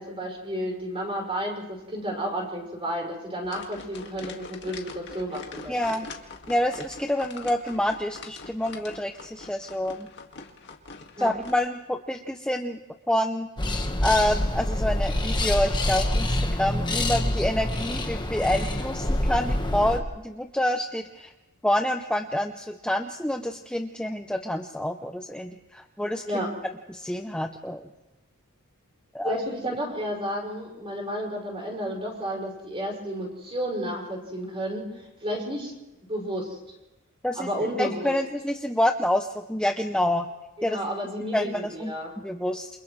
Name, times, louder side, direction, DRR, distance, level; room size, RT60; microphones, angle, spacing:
voice 1, 0.0-6.1 11.2-11.3 26.3-26.5 29.2-35.7 36.1-36.6 37.3-38.1 40.6-42.2, equal, 25° right, -1 dB, 5.9 m, -32 dB
sound 1, 3.4-11.5, left 4 dB, 55° left, 2.0 m, -44 dB
voice 2, 5.7-6.1 6.5-10.1 11.2-12.8 13.1-13.5 14.0-21.3 21.6-26.2 26.9-27.9 29.1-29.4 37.2-40.3 40.6-40.8 41.3-42.7, left 1 dB, 5° left, 4 dB, 0.7 m, -27 dB
sound 2, 13.6-20.0, left 1 dB, 20° left, 1.4 m, -26 dB
29.0 x 27.5 x 3.2 m, 1.0 s
head